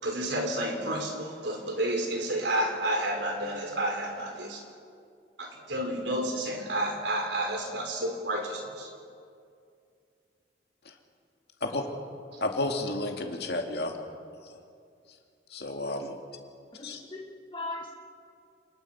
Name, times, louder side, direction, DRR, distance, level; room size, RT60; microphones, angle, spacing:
voice 1, 0.0-4.7 5.4-8.9 12.3-12.4, right 1 dB, 70° right, 3 dB, 4.0 m, -30 dB
voice 2, 12.4-13.9 14.4-14.6 15.5-16.2 16.8-17.0, left 2 dB, 60° left, 3 dB, 2.4 m, -31 dB
voice 3, 16.7-17.9, left 2 dB, 25° left, -1 dB, 1.7 m, -39 dB
29.0 x 20.0 x 5.7 m, 2.4 s
head